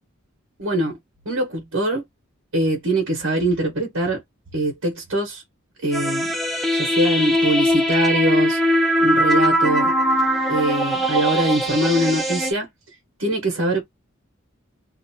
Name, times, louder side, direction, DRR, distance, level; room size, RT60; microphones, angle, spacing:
voice 1, 0.6-1.0 1.2-2.0 2.5-4.2 4.5-5.4 5.8-6.3 6.7-8.6 9.0-9.9 10.5-12.7 13.2-13.8, right 1 dB, 85° right, 1.3 m, -22 dB
sound 1, 5.9-12.5, equal, ahead, 0.7 m, -20 dB
2.8 x 2.5 x 2.8 m
head